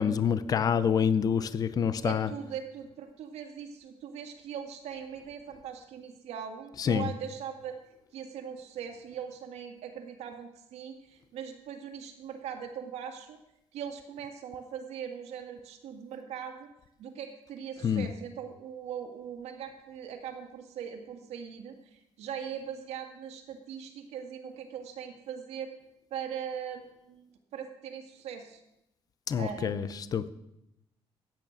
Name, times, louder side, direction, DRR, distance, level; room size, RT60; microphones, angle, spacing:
voice 1, 0.0-2.3 6.8-7.1 17.8-18.1 29.3-30.3, left 7 dB, 35° left, 14 dB, 0.6 m, -27 dB
voice 2, 2.0-7.8 8.1-13.4 13.7-16.7 17.0-25.7 26.1-28.6 29.4-30.1, right 8 dB, 85° right, 4 dB, 2.0 m, -40 dB
14.5 x 9.1 x 6.5 m, 0.84 s
cardioid pair, 165°, 11 cm